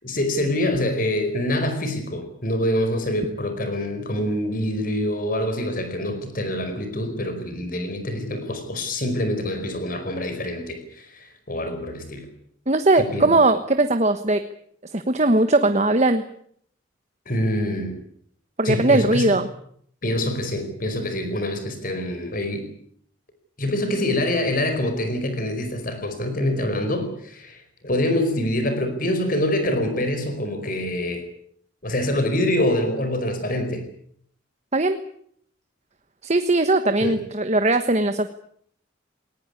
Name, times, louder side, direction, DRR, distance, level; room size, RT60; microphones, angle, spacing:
voice 1, 0.0-12.2 13.0-13.3 17.3-18.0 18.6-19.3 20.0-22.7 23.6-31.2 31.8-33.8 37.0-37.2, left 1 dB, 45° left, 8 dB, 4.8 m, -25 dB
voice 2, 12.7-14.4 14.9-16.2 18.6-19.4 34.7-35.0 36.2-38.3, right 2 dB, 35° right, 9 dB, 1.2 m, -19 dB
20.0 x 20.0 x 9.7 m, 0.65 s
head